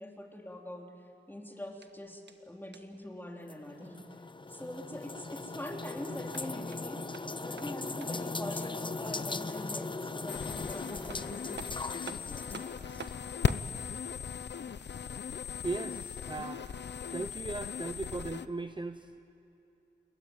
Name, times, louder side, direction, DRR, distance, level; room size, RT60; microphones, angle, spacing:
voice 1, 0.0-4.0 4.5-7.1 7.4-12.6, left 1 dB, 10° left, 1 dB, 3.2 m, -44 dB
sound 1, 1.7-3.1 6.1-8.3 10.6-10.7 11.1-13.7, right 5 dB, 75° right, 1.3 m, -49 dB
sound 2, 3.5-13.1, left 3 dB, 25° left, 0.7 m, -39 dB
sound 3, 10.3-18.5, left 7 dB, 75° left, 0.7 m, -37 dB
voice 2, 15.6-16.8 17.1-19.2, right 3 dB, 25° right, 9 dB, 0.7 m, -38 dB
29.0 x 21.5 x 9.0 m, 2.8 s
wide cardioid pair, 90°, 18 cm